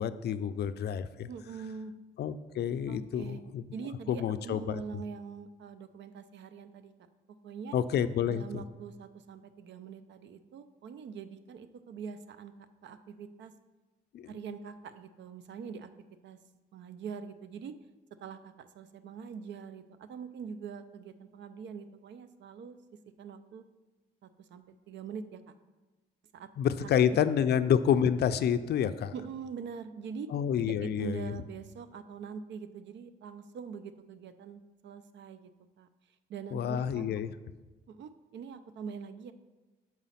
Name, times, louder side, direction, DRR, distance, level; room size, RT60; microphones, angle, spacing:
voice 1, 0.0-1.3 2.2-3.6 4.1-4.8 7.7-8.6 14.1-14.3 26.6-29.1 30.3-31.3 36.5-37.3, left 8 dB, 55° left, 13 dB, 0.4 m, -28 dB
voice 2, 1.3-1.9 2.9-3.4 3.7-6.9 7.4-7.7 8.3-12.5 12.8-13.5 14.3-15.9 16.2-16.4 16.7-17.7 18.2-22.8 23.2-23.6 24.2-25.5 26.3-26.5 26.8-27.2 29.1-30.3 30.7-35.5 35.8-35.9 36.3-37.0 37.9-39.3, right 6 dB, 65° right, 12 dB, 0.5 m, -43 dB
6.2 x 5.0 x 5.6 m, 1.2 s
cardioid pair, 90°, 20 cm